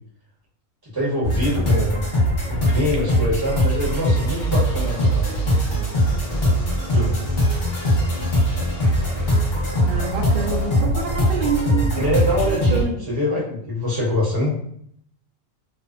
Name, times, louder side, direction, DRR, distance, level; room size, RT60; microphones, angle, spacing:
voice 1, 0.8-2.1 2.5-5.4 6.2-6.6 6.9-7.2 8.5-8.6 12.0-14.5, left 1 dB, 20° right, -6 dB, 0.7 m, -24 dB
sound 1, 1.2-12.8, equal, 40° left, 1.0 m, -21 dB
sound 2, 3.8-10.8, left 2 dB, 70° left, 0.9 m, -42 dB
voice 2, 9.8-12.0 12.7-12.9, right 4 dB, 60° right, 0 dB, 0.7 m, -26 dB
2.6 x 2.1 x 2.3 m, 0.68 s
omnidirectional pair, 1.4 m